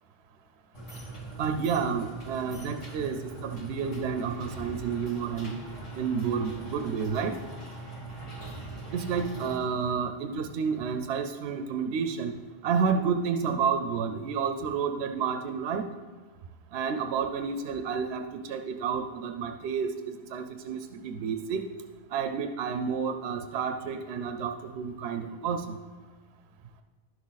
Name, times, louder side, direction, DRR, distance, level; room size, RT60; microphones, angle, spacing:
sound 1, 0.7-9.6, right 3 dB, 30° left, 1.7 m, -41 dB
voice 1, 1.4-5.5 5.9-7.4 8.9-12.3 12.6-15.9 16.7-21.7 22.1-25.8, right 6 dB, 80° right, 6 dB, 0.8 m, -30 dB
11.5 x 6.2 x 4.0 m, 1.4 s
omnidirectional pair, 1.1 m